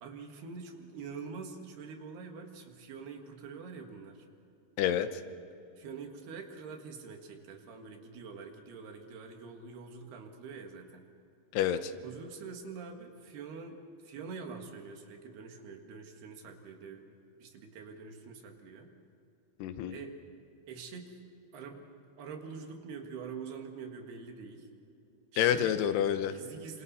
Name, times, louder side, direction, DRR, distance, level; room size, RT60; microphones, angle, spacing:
voice 1, 0.0-4.3 5.8-11.1 12.0-17.1 17.4-18.9 19.9-20.2 20.7-21.1 21.5-21.9 22.2-24.7 25.3-25.8 26.3-26.8, right 5 dB, 75° right, 3 dB, 3.8 m, -45 dB
voice 2, 11.5-11.9 19.6-20.0 25.4-26.4, left 10 dB, 85° left, 10 dB, 3.0 m, -28 dB
27.5 x 26.5 x 4.2 m, 2.8 s
omnidirectional pair, 4.6 m